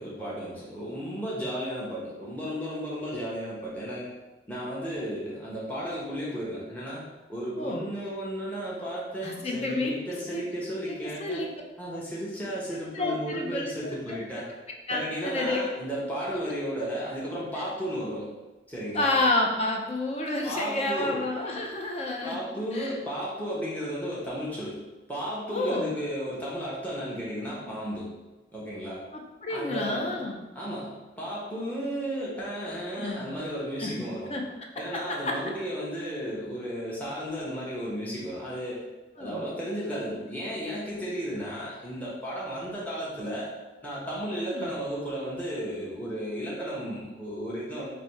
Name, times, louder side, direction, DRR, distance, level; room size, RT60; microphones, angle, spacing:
voice 1, 0.0-4.1 4.5-7.0 7.3-11.4 11.8-14.5 14.9-18.3 18.7-19.2 20.4-21.2 22.2-24.8 25.1-28.1 28.5-29.0 29.5-30.2 30.5-34.3 34.8-38.8 39.2-43.5 43.8-47.9, equal, 10° left, -7 dB, 0.8 m, -34 dB
voice 2, 9.2-9.9 10.3-10.4 10.9-11.5 12.9-13.9 14.9-15.6 18.9-22.4 22.7-23.0 25.5-25.9 29.1-30.4 33.0-33.4 33.8-34.4 34.9-35.4 39.2-39.5 44.4-44.7, left 2 dB, 35° left, 1 dB, 0.4 m, -30 dB
3.4 x 2.6 x 4.3 m, 1.1 s
head